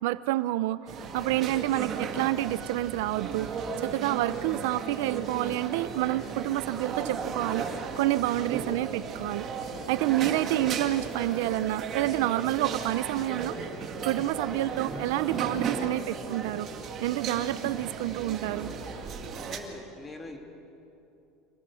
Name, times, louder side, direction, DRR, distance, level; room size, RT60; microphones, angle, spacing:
voice 1, 0.0-0.8 1.1-7.7 8.0-9.5 9.9-13.6 14.0-16.7 17.0-18.7, right 16 dB, 80° right, 16 dB, 0.5 m, -28 dB
sound 1, 0.9-19.6, right 5 dB, 35° right, 2.1 m, -35 dB
voice 2, 19.3-20.4, left 2 dB, 15° left, 3 dB, 2.3 m, -44 dB
25.0 x 18.0 x 7.0 m, 2.8 s
cardioid pair, 150°, 0 cm